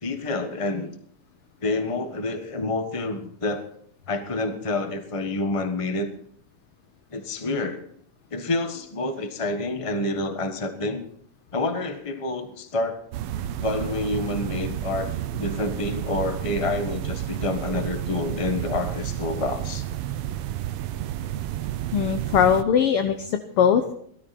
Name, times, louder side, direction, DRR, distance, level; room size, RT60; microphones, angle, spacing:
voice 1, 0.0-0.9 1.6-3.6 4.1-6.1 7.1-7.8 8.3-11.0 11.5-13.0 13.6-15.1 15.4-19.8, left 2 dB, 50° left, 7 dB, 0.4 m, -28 dB
sound 1, 13.1-22.6, right 12 dB, 70° right, 1.4 m, -31 dB
voice 2, 21.9-23.9, left 8 dB, 65° left, 7 dB, 1.5 m, -21 dB
19.0 x 13.0 x 4.3 m, 0.67 s
omnidirectional pair, 3.3 m